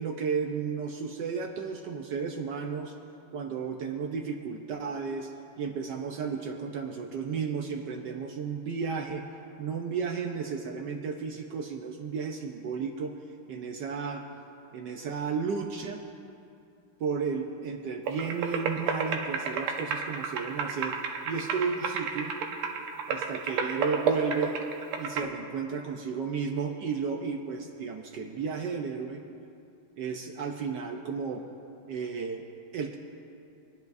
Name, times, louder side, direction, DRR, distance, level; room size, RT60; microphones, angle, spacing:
voice 1, 0.0-2.9 3.3-9.3 9.6-13.2 13.5-14.3 14.7-16.0 17.0-21.0 21.3-22.4 23.1-24.6 25.0-29.2 30.0-31.5 31.9-32.5 32.7-33.0, right 5 dB, 70° right, 4 dB, 1.1 m, -33 dB
sound 1, 18.1-25.2, right 5 dB, 85° right, 1.7 m, -32 dB
23.5 x 10.5 x 2.5 m, 2.6 s
omnidirectional pair, 2.4 m